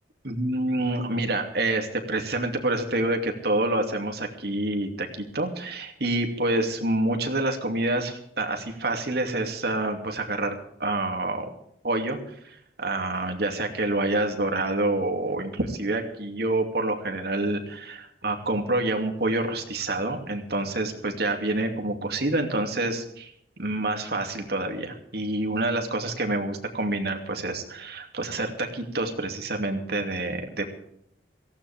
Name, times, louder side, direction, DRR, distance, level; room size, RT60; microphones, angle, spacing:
voice 1, 0.2-11.5 11.8-23.3 23.6-30.8, right 2 dB, 65° right, 4 dB, 2.7 m, -27 dB
18.0 x 16.0 x 3.6 m, 0.72 s
head